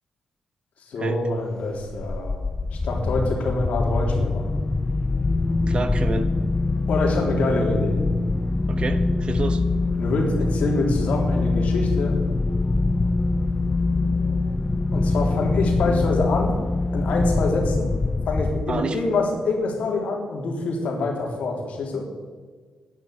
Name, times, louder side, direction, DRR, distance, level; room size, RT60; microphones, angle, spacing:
voice 1, 0.8-2.4 2.7-4.6 6.9-8.0 10.0-12.2 14.9-16.6 16.9-17.9 18.3-22.0, left 2 dB, 75° left, 0 dB, 3.5 m, -25 dB
sound 1, 1.8-19.1, left 3 dB, 25° left, 0.6 m, -24 dB
voice 2, 5.7-6.3 8.7-9.6 18.7-19.0, right 4 dB, 45° right, 10 dB, 1.3 m, -29 dB
10.5 x 10.5 x 8.3 m, 1.5 s
cardioid pair, 95°, 2 cm